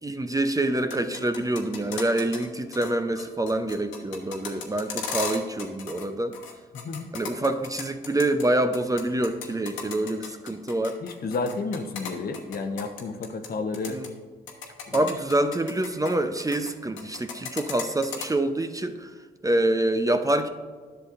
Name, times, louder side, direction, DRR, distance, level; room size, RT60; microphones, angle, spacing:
voice 1, 0.0-6.3 7.1-11.0 13.9-14.1 14.9-19.1 19.4-20.5, right 1 dB, 15° right, 8 dB, 0.6 m, -26 dB
sound 1, 0.8-2.5 2.7-2.9 3.2-6.1 6.3-8.4 8.7-13.5 13.7-14.1 14.5-16.7 17.0-18.3, left 6 dB, 80° left, 1.1 m, -36 dB
voice 2, 6.7-7.1 11.0-14.0 14.9-15.0, left 3 dB, 50° left, 7 dB, 0.9 m, -31 dB
10.5 x 6.6 x 2.5 m, 1.5 s
supercardioid pair, 50°, 20 cm